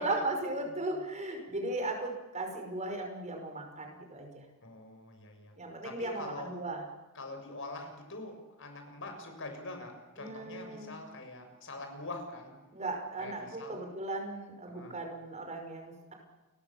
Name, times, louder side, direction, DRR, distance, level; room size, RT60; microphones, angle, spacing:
voice 1, 0.0-4.4 5.6-6.9 10.2-11.0 12.7-16.1, right 2 dB, 30° right, 4 dB, 5.6 m, -37 dB
voice 2, 4.6-5.5 5.8-6.5 7.1-12.6 13.2-13.8 14.7-15.0, left 2 dB, 60° left, 4 dB, 6.7 m, -44 dB
30.0 x 22.5 x 7.3 m, 1.1 s
head